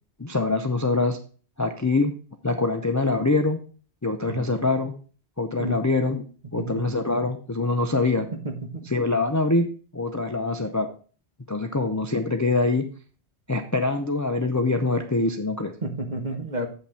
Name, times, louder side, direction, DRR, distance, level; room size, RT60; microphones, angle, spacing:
voice 1, 0.2-1.2 1.6-2.1 2.4-3.6 4.0-4.9 5.4-6.2 6.5-8.3 8.9-10.9 11.5-12.9 13.5-15.7, left 3 dB, 20° left, 6 dB, 0.5 m, -24 dB
voice 2, 8.4-8.9 15.8-16.7, right 1 dB, 45° right, 4 dB, 1.4 m, -31 dB
7.9 x 5.8 x 4.3 m, 0.39 s
omnidirectional pair, 1.1 m